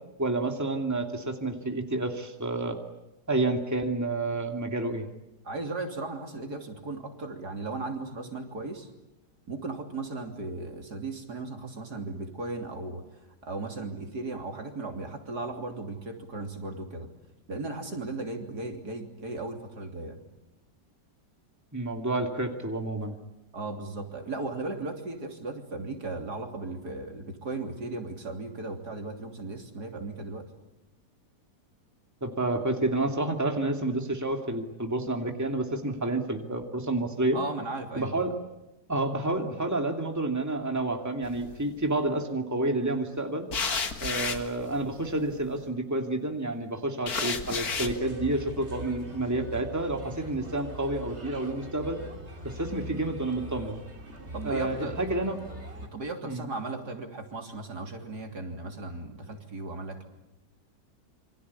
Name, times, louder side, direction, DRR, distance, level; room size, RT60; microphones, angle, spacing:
voice 1, 0.2-2.8 3.3-5.1 21.7-23.2 32.2-37.4 37.9-38.3 38.9-43.5 44.0-52.0 52.4-53.8 54.4-55.4 56.2-56.4, right 2 dB, 10° right, 3 dB, 2.5 m, -29 dB
voice 2, 5.4-8.9 9.5-13.0 13.4-17.1 17.5-20.2 23.5-30.5 37.3-38.2 54.3-55.0 55.8-60.0, right 3 dB, 65° right, 3 dB, 3.8 m, -36 dB
sound 1, 41.2-41.8 43.5-45.5 47.1-48.0, left 5 dB, 60° left, 2.2 m, -32 dB
Bird, 47.7-55.9, right 1 dB, 40° right, 3.7 m, -42 dB
28.0 x 25.0 x 8.4 m, 0.94 s
omnidirectional pair, 1.8 m